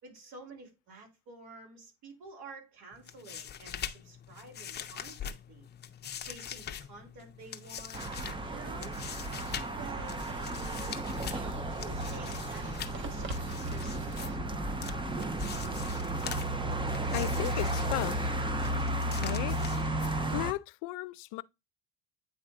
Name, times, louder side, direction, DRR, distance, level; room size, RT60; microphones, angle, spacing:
voice 1, 0.0-5.7 6.2-8.1 8.5-9.0 9.7-10.3 11.3-14.7, right 3 dB, 70° right, 4.1 m, -50 dB
sound 1, 2.9-20.5, left 9 dB, 35° left, 0.7 m, -44 dB
sound 2, 7.6-14.4, right 3 dB, 40° right, 1.2 m, -47 dB
sound 3, 7.9-20.5, right 1 dB, 15° right, 0.8 m, -33 dB
voice 2, 17.1-18.4 19.2-19.6 20.0-21.4, left 20 dB, 75° left, 0.5 m, -36 dB
9.0 x 3.2 x 3.8 m
supercardioid pair, 100°, 31 cm